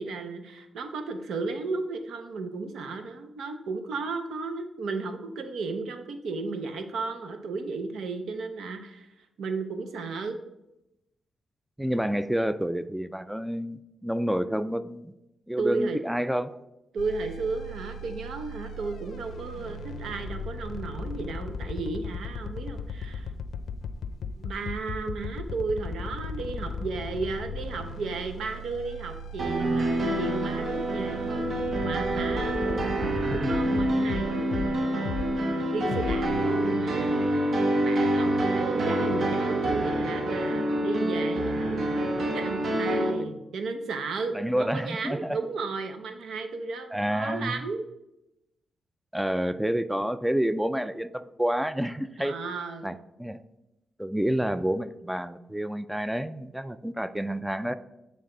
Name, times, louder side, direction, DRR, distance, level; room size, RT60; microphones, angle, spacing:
voice 1, 0.0-9.1 9.4-10.4 15.6-16.0 16.9-23.3 24.4-31.5 31.8-35.3 35.7-37.6 37.8-47.8 52.2-53.0, right 4 dB, 85° right, 7 dB, 0.7 m, -34 dB
voice 2, 11.8-15.1 15.5-16.6 33.4-33.5 44.3-45.4 46.9-47.6 49.1-52.3 52.8-53.4 54.0-57.7, equal, 5° right, 13 dB, 0.3 m, -29 dB
sound 1, 17.0-34.7 35.0-35.4 35.9-36.4, left 3 dB, 80° left, 0.5 m, -37 dB
sound 2, 29.4-43.1, right 1 dB, 60° right, 1.0 m, -27 dB
8.5 x 3.4 x 3.8 m, 0.89 s
cardioid pair, 80°, 0 cm